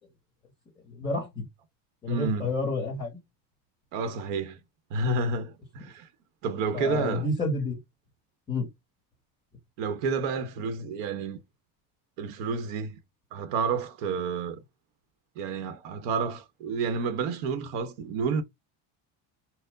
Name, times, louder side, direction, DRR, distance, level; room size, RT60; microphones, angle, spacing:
voice 1, 0.9-1.4 2.0-3.1 6.7-7.8 8.5-8.7, left 2 dB, 15° left, 1.9 m, -29 dB
voice 2, 2.1-2.5 3.9-4.6 4.9-6.1 6.4-7.3 9.8-11.4 12.2-13.0 13.3-14.6 15.4-18.4, right 4 dB, 85° right, 0.9 m, -30 dB
4.3 x 2.0 x 3.8 m
cardioid pair, 170°, 46 cm